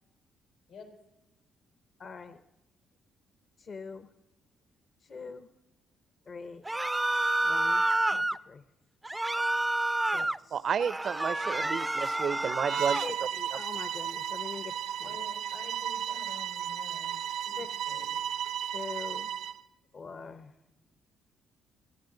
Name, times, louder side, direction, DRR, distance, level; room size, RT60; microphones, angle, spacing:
voice 1, 2.0-2.4 3.6-4.1 5.0-5.5 6.3-6.7 7.4-7.8 8.1-8.6 10.1-10.6 11.5-11.7 13.0-15.2 17.4-18.2 18.7-19.3 19.9-20.5, left 4 dB, 45° left, 11 dB, 0.8 m, -43 dB
sound 1, 6.7-8.4 9.1-10.4 10.8-13.1, right 2 dB, 10° right, 0.4 m, -29 dB
voice 2, 10.5-13.1, right 7 dB, 55° right, 18 dB, 0.6 m, -31 dB
Bowed string instrument, 12.7-19.6, right 9 dB, 90° right, 0.8 m, -34 dB
voice 3, 15.0-18.2, left 4 dB, 90° left, 1 dB, 4.6 m, -50 dB
28.5 x 11.0 x 3.9 m, 1.0 s
cardioid pair, 90°, 0 cm